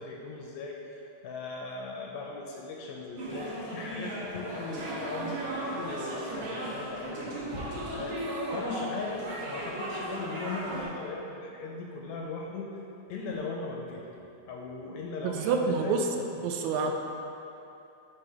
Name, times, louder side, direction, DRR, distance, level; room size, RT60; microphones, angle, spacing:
voice 1, 0.0-7.4 7.9-12.7 13.1-14.0 14.5-16.3, left 3 dB, 80° left, -1 dB, 1.7 m, -38 dB
sound 1, 3.2-10.8, right 1 dB, 60° right, 1.4 m, -36 dB
voice 2, 15.2-16.1 16.4-16.9, right 5 dB, 80° right, 3 dB, 1.8 m, -27 dB
7.7 x 3.1 x 4.8 m, 2.8 s
omnidirectional pair, 3.5 m